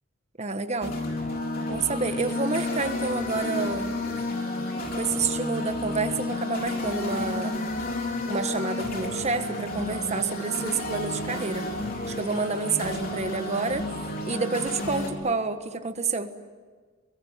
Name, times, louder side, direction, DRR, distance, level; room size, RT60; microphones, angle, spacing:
voice 1, 0.4-1.0 1.7-4.3 5.0-7.5 8.3-11.7 12.1-13.8 14.2-16.3, right 4 dB, 30° right, 8 dB, 1.4 m, -29 dB
sound 1, 0.8-15.1, left 2 dB, 45° left, 3.8 m, -31 dB
24.5 x 22.5 x 9.2 m, 1.5 s
head